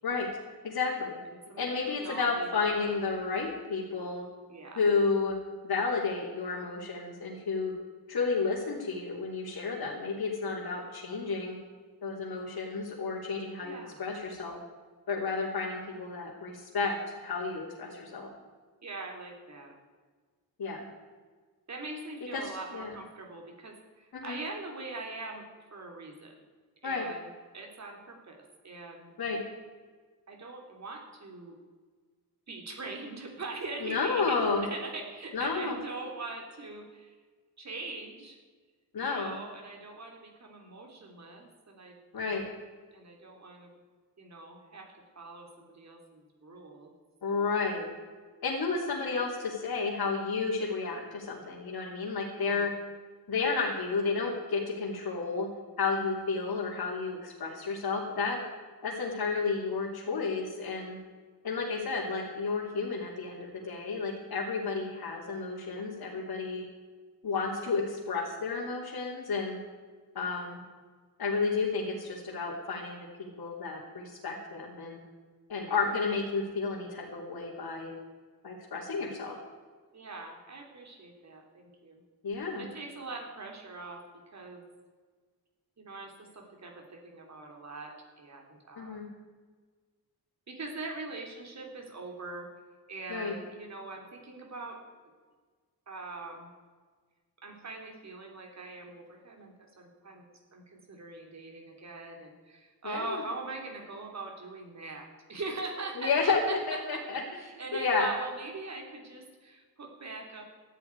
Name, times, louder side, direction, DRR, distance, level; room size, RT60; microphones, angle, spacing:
voice 1, 0.6-1.2 1.6-4.2 4.8-5.4 5.6-7.7 8.1-11.6 12.0-14.6 15.1-16.9 17.2-18.3 20.6-20.8 22.3-22.4 22.7-22.9 24.1-24.4 26.8-27.1 29.2-29.4 33.8-34.7 35.3-35.8 38.9-39.4 42.1-42.4 47.2-47.9 48.4-52.7 53.3-55.5 55.8-58.4 58.8-61.0 61.4-66.6 67.2-69.6 70.1-70.6 71.2-75.0 75.5-77.9 78.4-79.4 82.2-82.6 88.8-89.1 93.1-93.3 102.8-103.2 106.0-107.2 107.7-108.1, left 4 dB, 75° left, -5 dB, 3.2 m, -31 dB
voice 2, 1.3-3.0 4.5-4.9 13.6-14.0 18.8-19.7 21.7-26.3 26.8-27.2 27.5-29.1 30.3-31.6 32.5-37.1 37.6-38.4 39.0-42.0 42.3-42.4 42.9-43.7 44.2-46.9 47.3-47.6 52.4-52.7 79.9-82.0 82.6-84.0 84.3-84.6 85.8-89.0 90.5-92.5 92.9-94.8 95.9-96.5 97.4-100.3 100.5-110.4, right 3 dB, 45° right, 2 dB, 3.4 m, -42 dB
18.0 x 13.5 x 4.7 m, 1.5 s
wide cardioid pair, 155°, 37 cm